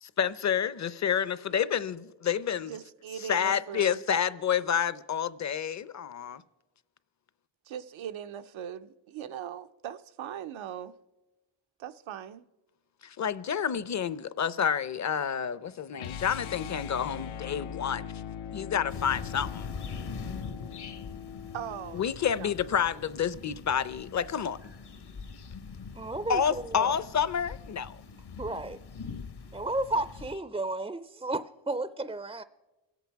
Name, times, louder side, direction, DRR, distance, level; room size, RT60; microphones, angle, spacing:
voice 1, 0.0-2.7 3.2-6.4 13.0-18.1 18.5-19.7 21.9-24.6 26.3-28.0, left 8 dB, 40° left, 0.6 m, -29 dB
voice 2, 2.7-4.0 7.7-10.9 11.8-12.4 21.5-22.0 22.3-22.5, right 9 dB, 85° right, 0.7 m, -40 dB
sound 1, 16.0-22.0, left 8 dB, 90° left, 0.7 m, -40 dB
sound 2, 18.9-30.4, left 5 dB, 60° left, 1.0 m, -43 dB
voice 3, 25.9-27.0 28.4-28.8 29.5-32.4, right 2 dB, 15° right, 0.4 m, -33 dB
23.0 x 8.2 x 4.6 m
cardioid pair, 65°, 46 cm